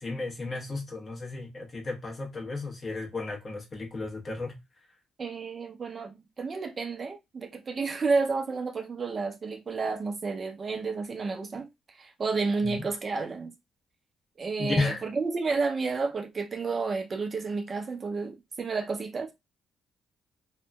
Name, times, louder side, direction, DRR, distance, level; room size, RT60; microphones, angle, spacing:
voice 1, 0.0-4.6 12.6-12.8 14.6-15.0, left 3 dB, 40° left, 1.1 m, -33 dB
voice 2, 5.2-11.7 12.0-13.5 14.4-19.3, right 4 dB, 40° right, 0.5 m, -31 dB
2.8 x 2.5 x 2.3 m
cardioid pair, 90°, 0 cm